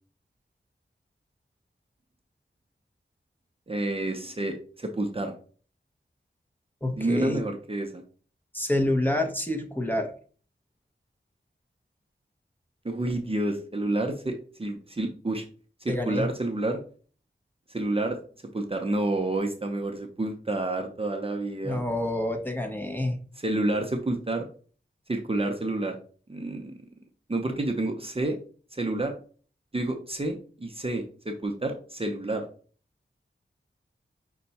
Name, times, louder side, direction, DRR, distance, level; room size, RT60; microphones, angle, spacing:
voice 1, 3.7-5.3 7.0-8.0 12.8-15.4 15.8-16.8 17.7-18.2 18.5-21.8 23.4-24.5 25.1-25.9 26.3-26.7 27.3-28.4 28.7-29.1 29.7-32.5, right 2 dB, 30° right, 3 dB, 0.6 m, -29 dB
voice 2, 6.8-7.4 8.5-10.1 15.9-16.2 21.6-23.2, left 1 dB, 10° left, 2 dB, 0.8 m, -27 dB
5.4 x 2.3 x 4.0 m, 0.42 s
wide cardioid pair, 65°, 20 cm